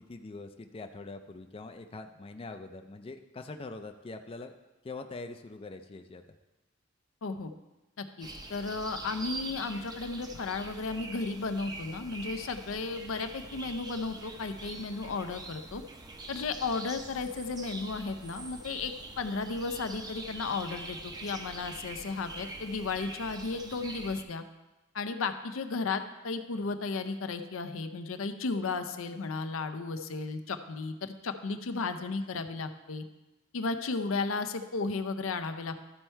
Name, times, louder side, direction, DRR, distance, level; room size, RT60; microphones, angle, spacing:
voice 1, 0.1-4.5 4.8-6.2 13.5-13.7, left 3 dB, 30° left, 6 dB, 0.4 m, -43 dB
voice 2, 7.2-7.5 8.0-15.8 16.3-24.4 24.9-33.0 33.5-35.8, left 4 dB, 85° left, 9 dB, 0.6 m, -34 dB
sound 1, 8.2-24.2, right 2 dB, 20° right, 0.6 m, -44 dB
13.0 x 4.4 x 4.5 m, 1.1 s
head